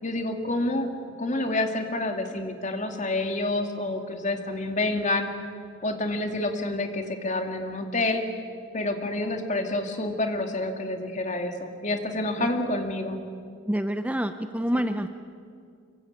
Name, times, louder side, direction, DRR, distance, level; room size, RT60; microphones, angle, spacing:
voice 1, 0.0-0.9 1.2-5.3 5.8-8.2 8.7-13.2, left 2 dB, 40° left, 5 dB, 2.5 m, -28 dB
voice 2, 13.7-15.2, equal, 5° right, 9 dB, 0.6 m, -27 dB
25.5 x 23.5 x 9.0 m, 2.3 s
head